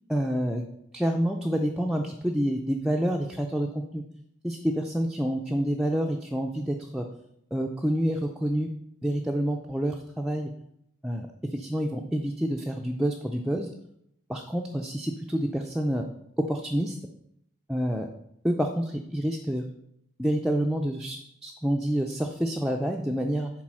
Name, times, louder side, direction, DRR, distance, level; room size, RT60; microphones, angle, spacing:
voice 1, 0.1-0.6 0.9-4.0 4.4-7.1 7.5-8.7 9.0-10.5 11.0-11.3 11.5-13.7 14.3-16.0 16.5-16.9 17.7-18.1 18.4-19.6 20.2-21.2 21.4-23.5, equal, ahead, 1 dB, 0.4 m, -28 dB
7.4 x 4.3 x 6.2 m, 0.75 s
head